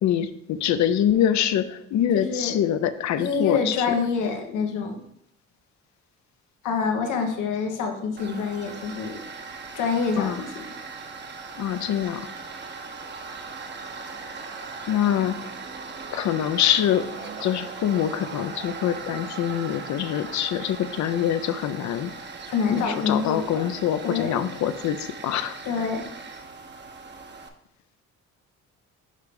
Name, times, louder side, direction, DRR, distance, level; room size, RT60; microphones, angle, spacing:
voice 1, 0.0-3.9 10.2-10.4 11.6-12.3 14.9-15.3 16.1-17.1 17.4-22.1 22.7-25.6, left 10 dB, 70° left, 11 dB, 0.6 m, -24 dB
voice 2, 2.1-2.6 3.2-4.9 6.6-9.2 9.7-10.7 22.5-23.7 24.0-24.4 25.6-26.1, left 5 dB, 85° left, 4 dB, 1.0 m, -26 dB
Tools, 8.2-27.5, right 4 dB, 35° right, 0.8 m, -39 dB
6.5 x 3.2 x 5.2 m, 0.75 s
cardioid pair, 90°, 30 cm